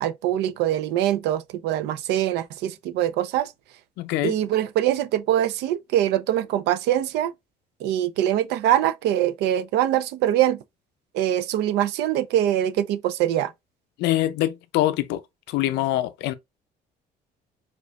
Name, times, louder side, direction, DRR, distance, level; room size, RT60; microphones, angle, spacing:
voice 1, 0.0-3.5 4.2-7.3 7.8-10.6 11.1-13.5, right 12 dB, 85° right, 0.5 m, -23 dB
voice 2, 4.0-4.3 14.0-15.2 15.5-16.3, left 14 dB, 85° left, 0.4 m, -24 dB
4.9 x 2.4 x 2.2 m
cardioid pair, 110°, 17 cm